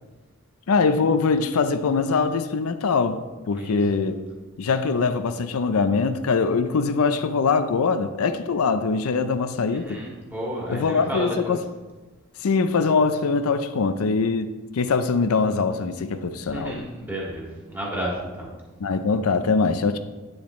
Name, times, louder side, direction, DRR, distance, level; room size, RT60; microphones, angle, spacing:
voice 1, 0.7-3.2 3.5-4.2 4.6-10.0 10.7-11.6 12.4-16.8 18.8-20.0, left 4 dB, 85° left, 10 dB, 0.5 m, -22 dB
voice 2, 9.8-11.6 16.5-18.5, right 1 dB, 10° right, -5 dB, 2.0 m, -31 dB
9.7 x 7.1 x 3.1 m, 1.2 s
head